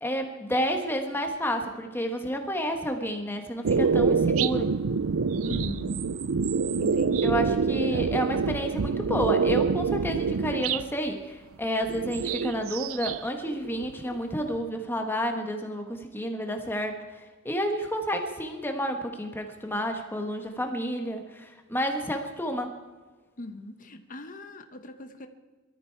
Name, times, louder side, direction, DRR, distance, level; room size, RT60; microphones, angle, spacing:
voice 1, 0.0-4.7 7.2-17.0 17.4-22.7, equal, 10° left, 4 dB, 1.2 m, -30 dB
sound 1, 3.6-10.9 11.8-13.2 13.5-14.4, right 5 dB, 85° right, 0.5 m, -26 dB
voice 2, 5.4-6.0 6.8-7.5 23.4-25.3, left 1 dB, 40° left, 7 dB, 1.2 m, -40 dB
22.5 x 13.0 x 4.6 m, 1.3 s
head